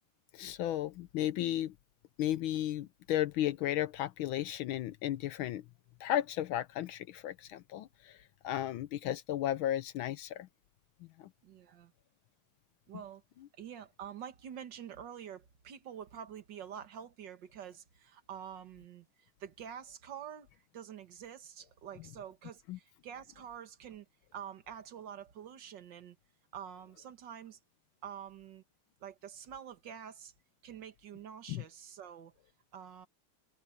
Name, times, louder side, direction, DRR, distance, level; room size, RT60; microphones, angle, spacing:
voice 1, 0.3-1.7 2.2-5.6 6.0-8.2 8.4-10.5 11.2-11.3 22.7-22.8 31.5-31.6, left 12 dB, 75° left, 1.4 m, -34 dB
voice 2, 11.4-11.9 12.9-13.2 13.6-24.1 24.3-26.2 26.5-27.6 28.0-28.6 29.0-30.3 30.6-32.3 32.7-33.1, right 9 dB, 60° right, 2.0 m, -47 dB
omnidirectional pair, 2.4 m